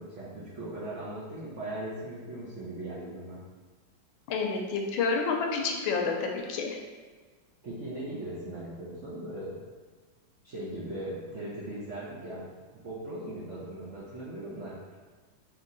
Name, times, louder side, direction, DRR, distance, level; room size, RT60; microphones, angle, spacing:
voice 1, 0.0-3.5 7.6-9.6 10.4-15.0, right 1 dB, 55° right, -8 dB, 0.8 m, -39 dB
voice 2, 4.3-6.8, left 4 dB, 90° left, 2 dB, 1.4 m, -29 dB
4.5 x 2.9 x 3.9 m, 1.4 s
omnidirectional pair, 2.2 m